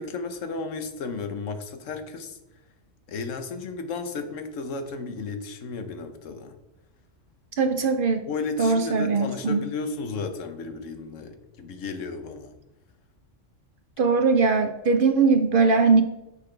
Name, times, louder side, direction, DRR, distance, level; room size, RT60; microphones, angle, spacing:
voice 1, 0.0-2.4 3.1-6.5 8.2-12.5, left 4 dB, 75° left, 8 dB, 1.2 m, -33 dB
voice 2, 7.6-8.2 8.6-9.6 14.0-16.0, right 4 dB, 55° right, 8 dB, 0.6 m, -20 dB
9.8 x 6.0 x 3.3 m, 0.97 s
omnidirectional pair, 1.3 m